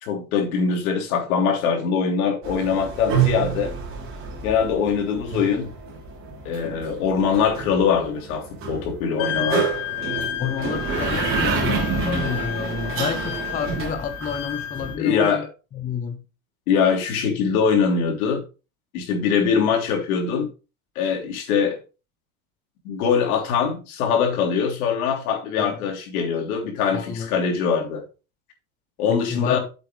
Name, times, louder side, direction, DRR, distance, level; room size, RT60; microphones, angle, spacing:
voice 1, 0.0-3.7 4.4-5.7 6.5-9.7 15.0-15.5 16.7-18.4 18.9-20.5 21.0-21.8 22.8-28.0 29.0-29.6, left 6 dB, 80° left, 3.5 m, -22 dB
sound 1, 2.4-15.0, right 6 dB, 30° right, 3.4 m, -28 dB
Wind instrument woodwind instrument, 9.2-15.2, left 11 dB, 50° left, 1.0 m, -32 dB
voice 2, 10.4-15.4 15.7-16.2 25.6-25.8 26.9-27.3 29.1-29.6, left 8 dB, 20° left, 0.7 m, -29 dB
8.9 x 8.0 x 3.3 m
supercardioid pair, 155°, 43 cm